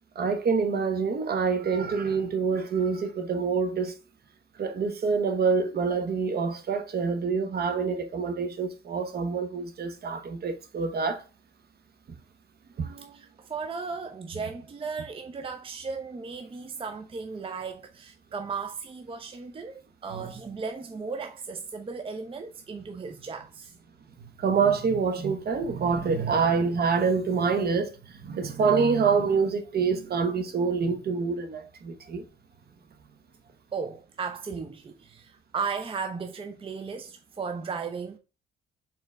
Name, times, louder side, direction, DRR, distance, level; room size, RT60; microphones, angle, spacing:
voice 1, 0.1-3.9 4.6-11.2 12.8-13.2 20.1-20.3 24.4-32.2, right 5 dB, 55° right, 1.0 m, -26 dB
voice 2, 13.1-23.7 26.1-26.3 33.7-38.2, right 5 dB, 25° right, 0.6 m, -36 dB
4.3 x 3.8 x 3.3 m
cardioid pair, 90°, 20 cm